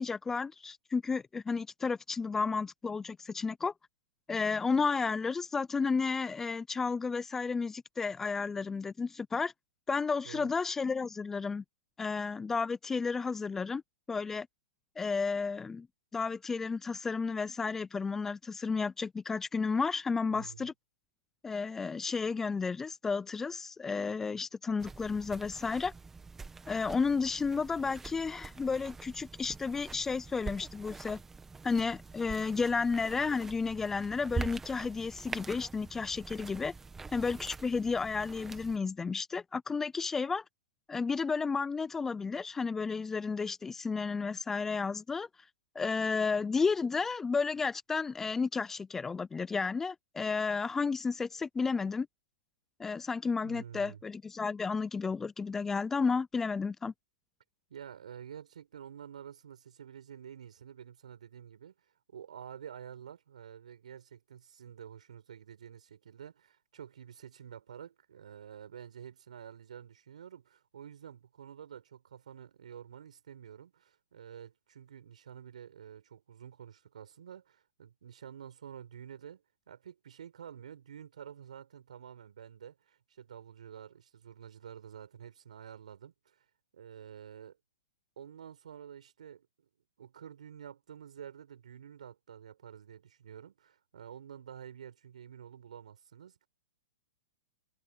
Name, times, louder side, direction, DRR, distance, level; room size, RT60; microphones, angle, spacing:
voice 1, 0.0-3.7 4.3-9.5 9.9-11.6 12.0-13.8 14.1-14.5 15.0-15.9 16.1-20.7 21.4-25.9 26.7-31.2 31.6-36.7 37.1-40.4 40.9-45.3 45.7-52.1 52.8-56.9, left 4 dB, 10° left, 0.5 m, -32 dB
voice 2, 20.3-20.7 53.4-54.0 57.7-61.7 62.1-86.4 86.7-87.6 88.2-89.7 90.0-96.5, right 8 dB, 75° right, 7.8 m, -49 dB
sound 1, 24.8-38.8, right 4 dB, 10° right, 1.7 m, -44 dB
hypercardioid pair, 145°, 4 cm